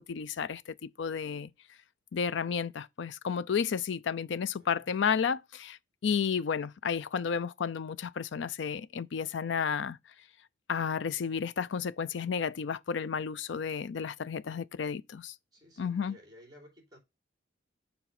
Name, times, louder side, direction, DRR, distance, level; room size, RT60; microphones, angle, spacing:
voice 1, 0.0-1.5 2.1-10.0 10.7-15.3 15.8-16.2, left 6 dB, 75° left, 0.4 m, -32 dB
voice 2, 15.5-17.0, equal, 20° right, 3.4 m, -55 dB
7.1 x 3.4 x 5.8 m
head